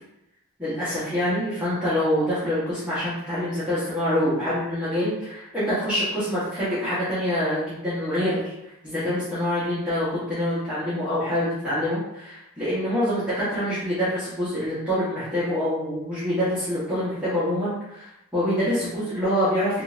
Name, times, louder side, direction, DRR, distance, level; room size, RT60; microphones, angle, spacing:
voice 1, 0.6-8.5 8.8-19.8, equal, 5° right, -13 dB, 0.9 m, -25 dB
3.7 x 2.5 x 2.4 m, 0.84 s
head